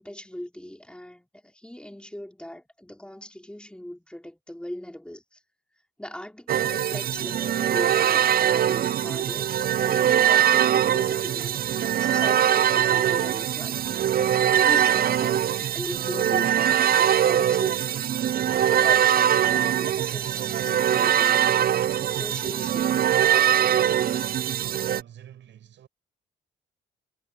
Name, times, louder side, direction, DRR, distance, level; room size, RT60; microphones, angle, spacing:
voice 1, 0.0-5.4 6.0-14.0 14.5-18.0 18.7-21.6 22.0-23.3 24.1-24.4, left 1 dB, 5° left, 5.2 m, -39 dB
sound 1, 6.5-25.0, right 10 dB, 50° right, 0.5 m, -22 dB
voice 2, 24.7-25.9, right 10 dB, 70° right, 6.4 m, -47 dB
cardioid pair, 90°, 20 cm